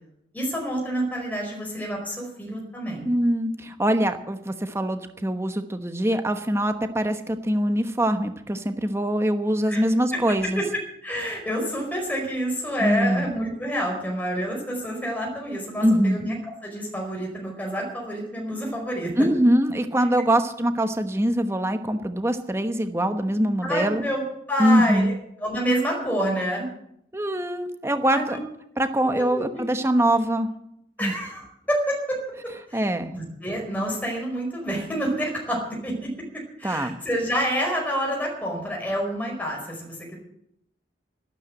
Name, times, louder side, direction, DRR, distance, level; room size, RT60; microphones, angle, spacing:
voice 1, 0.3-3.1 9.7-9.8 10.1-10.2 10.5-10.6 11.0-16.3 16.6-19.1 23.6-24.2 24.5-25.1 25.4-26.7 28.1-28.4 29.0-29.6 31.0-32.2 32.7-32.8 33.1-36.1 36.6-40.2, equal, 10° left, -1 dB, 4.8 m, -28 dB
voice 2, 3.0-10.6 12.8-13.3 15.8-16.2 19.2-24.0 24.6-25.1 27.1-28.4 28.8-30.5 31.0-31.1 32.7-33.1 36.6-36.9, right 1 dB, 15° right, 8 dB, 1.1 m, -23 dB
13.0 x 12.5 x 7.8 m, 0.76 s
head